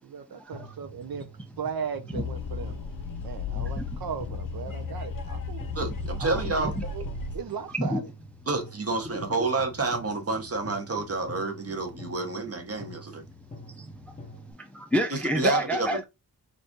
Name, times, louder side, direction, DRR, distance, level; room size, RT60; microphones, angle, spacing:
voice 1, 0.0-1.3 1.6-2.8 3.2-5.6 6.2-7.0 7.3-8.0, right 7 dB, 65° right, 0.5 m, -37 dB
sound 1, 0.5-14.5, left 1 dB, 20° left, 1.0 m, -46 dB
sound 2, 2.1-7.4, left 4 dB, 55° left, 0.6 m, -34 dB
voice 2, 5.7-6.7 8.5-13.2 15.1-16.0, right 3 dB, 35° right, 0.9 m, -29 dB
voice 3, 13.7-14.0 14.6-16.0, equal, 5° left, 0.4 m, -28 dB
4.1 x 2.6 x 3.5 m
wide cardioid pair, 180°, 40 cm